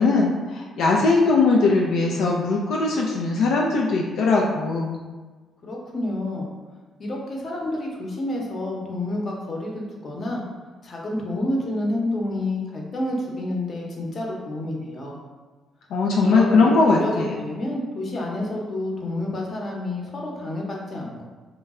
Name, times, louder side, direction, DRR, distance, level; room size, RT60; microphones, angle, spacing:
voice 1, 0.0-5.0 15.9-17.3, left 3 dB, 80° left, -2 dB, 0.3 m, -20 dB
voice 2, 5.6-6.5 7.0-10.4 10.8-15.2 16.2-21.3, left 1 dB, 45° left, -2 dB, 0.8 m, -29 dB
3.1 x 2.2 x 3.5 m, 1.3 s
cardioid pair, 90°, 0 cm